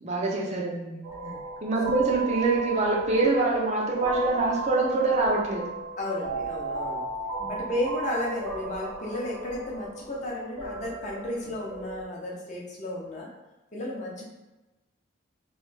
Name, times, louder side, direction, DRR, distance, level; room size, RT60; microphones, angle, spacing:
voice 1, 0.0-1.1 1.6-5.7 7.4-7.6, right 3 dB, 35° right, -1 dB, 0.5 m, -25 dB
sound 1, 1.0-12.0, right 4 dB, 90° right, 0.7 m, -36 dB
voice 2, 6.0-7.1 7.5-13.3 13.7-14.2, left 1 dB, 35° left, -3 dB, 0.7 m, -33 dB
3.1 x 3.1 x 3.3 m, 1.1 s
head